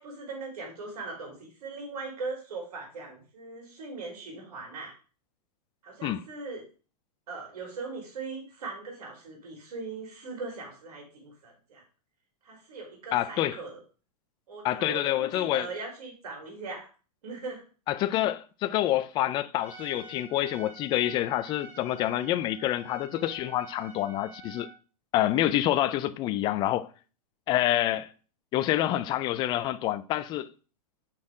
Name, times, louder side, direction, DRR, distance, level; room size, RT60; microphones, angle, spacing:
voice 1, 0.0-4.9 5.8-6.6 7.3-11.8 12.4-13.8 14.5-16.9 17.2-17.6, right 3 dB, 75° right, 3.5 m, -40 dB
voice 2, 13.1-13.6 14.6-15.7 17.9-24.7 25.1-26.9 27.5-28.1 28.5-30.5, left 13 dB, 25° left, 0.4 m, -27 dB
Trumpet, 19.5-24.8, right 4 dB, 10° right, 1.4 m, -48 dB
5.6 x 4.3 x 4.9 m
hypercardioid pair, 140°, 20 cm